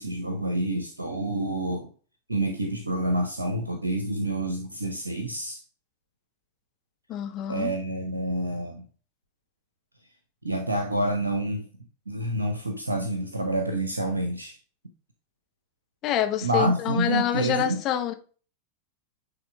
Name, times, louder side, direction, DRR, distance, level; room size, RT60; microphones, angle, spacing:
voice 1, 0.0-1.9 2.3-5.6 7.5-8.8 10.4-11.7 12.1-14.6 16.4-17.8, right 1 dB, 80° right, 0.9 m, -28 dB
voice 2, 7.1-7.7 16.0-18.1, left 10 dB, 35° left, 1.0 m, -26 dB
9.7 x 3.6 x 3.5 m
figure-of-eight pair, 90°, 0 cm